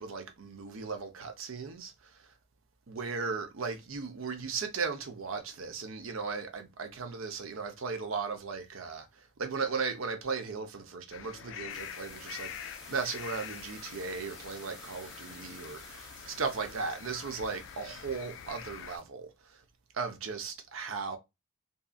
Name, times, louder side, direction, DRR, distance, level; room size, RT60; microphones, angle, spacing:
voice 1, 0.0-2.3 2.9-19.6 19.9-21.2, right 5 dB, 80° right, 0.6 m, -37 dB
sound 1, 11.1-19.0, left 9 dB, 65° left, 0.3 m, -46 dB
sound 2, 11.7-19.0, equal, 5° right, 0.6 m, -52 dB
2.6 x 2.4 x 2.3 m
head